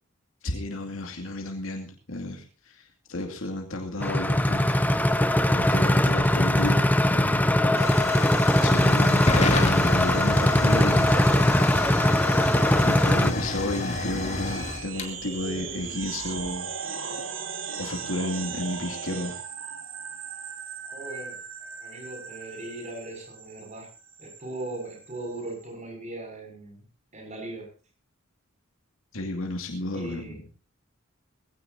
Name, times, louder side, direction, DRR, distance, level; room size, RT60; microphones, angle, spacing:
voice 1, 0.4-4.7 5.5-7.5 8.5-11.3 12.8-17.0 17.8-19.4 29.1-30.4, left 1 dB, 80° left, 2 dB, 2.4 m, -32 dB
sound 1, 4.0-13.3, left 1 dB, 10° left, 0.8 m, -21 dB
Hiss / Fire / Tick, 6.1-16.5, left 2 dB, 30° left, 2.6 m, -32 dB
sound 2, 9.8-25.7, right 6 dB, 75° right, 2.7 m, -39 dB
voice 2, 15.4-16.0 20.8-23.9 24.2-26.9 27.1-27.7 29.9-30.4, right 2 dB, 35° right, 3 dB, 6.4 m, -39 dB
20.5 x 16.5 x 2.7 m, 0.34 s
head